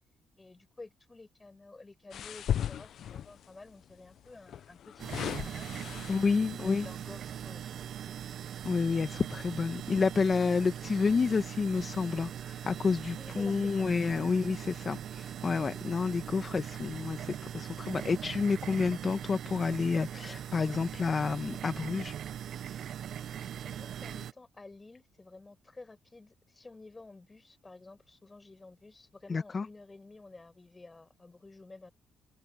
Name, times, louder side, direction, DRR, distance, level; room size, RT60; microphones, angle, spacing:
voice 1, 0.4-5.9 6.4-8.2 13.1-13.9 23.6-31.9, left 3 dB, 20° left, 5.1 m, -52 dB
sound 1, 2.1-3.5 4.5-6.5 7.1-7.3, left 10 dB, 65° left, 0.4 m, -36 dB
sound 2, 5.0-24.3, right 9 dB, 70° right, 0.5 m, -41 dB
voice 2, 6.1-6.9 8.6-22.1 29.3-29.7, left 4 dB, 35° left, 1.1 m, -29 dB
open air
cardioid pair, 100°, 0 cm